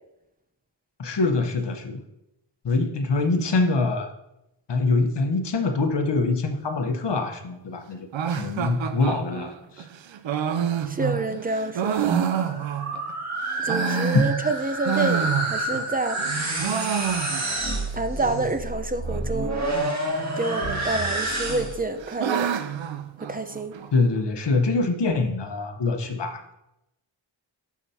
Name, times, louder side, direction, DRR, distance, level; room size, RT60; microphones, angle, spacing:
voice 1, 1.0-2.0 2.6-4.1 4.7-8.0 8.3-9.5 23.9-26.5, left 3 dB, 65° left, 5 dB, 1.0 m, -24 dB
sound 1, 8.1-13.1 13.5-15.9 16.2-17.7 18.0-18.1 18.3-18.4 19.0-19.5 20.5-21.1 21.5-23.9, right 8 dB, 85° right, 0.6 m, -28 dB
voice 2, 10.9-12.2 13.6-16.2 17.9-19.6 20.4-22.5 23.2-23.7, right 2 dB, 20° right, 8 dB, 0.8 m, -28 dB
sound 2, 12.0-21.9, right 2 dB, 35° right, 1.8 m, -29 dB
12.0 x 4.9 x 2.8 m, 0.88 s
cardioid pair, 55°, 45 cm